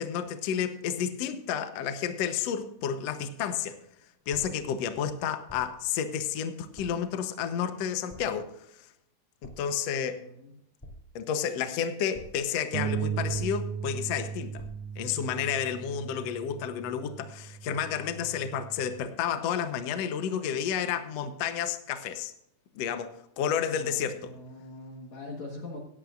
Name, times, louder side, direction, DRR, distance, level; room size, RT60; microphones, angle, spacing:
voice 1, 0.0-3.7 4.3-8.5 9.4-10.2 11.1-14.6 15.0-22.3 22.7-24.3, left 8 dB, 85° left, 8 dB, 1.4 m, -31 dB
sound 1, 4.3-4.8 5.5-5.9 6.7-7.1 8.1-8.5 9.4-9.8 10.8-11.4 12.1-12.6 13.3-13.9 14.6-15.0, left 1 dB, 10° left, 1.4 m, -49 dB
voice 2, 10.1-10.6 23.7-25.8, left 2 dB, 55° left, 0 dB, 2.5 m, -42 dB
Bass guitar, 12.7-19.0, right 7 dB, 85° right, 1.9 m, -36 dB
17.0 x 11.0 x 2.5 m, 0.79 s
omnidirectional pair, 4.4 m